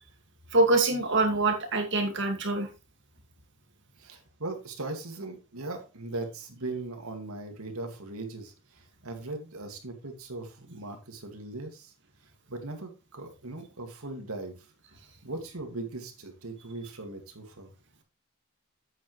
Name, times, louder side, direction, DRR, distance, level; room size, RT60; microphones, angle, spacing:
voice 1, 0.5-2.7, right 2 dB, 55° right, 4 dB, 2.2 m, -24 dB
voice 2, 4.0-11.9 12.5-14.7 15.2-17.7, right 2 dB, 80° right, 4 dB, 2.3 m, -39 dB
8.8 x 8.5 x 3.2 m, 0.29 s
head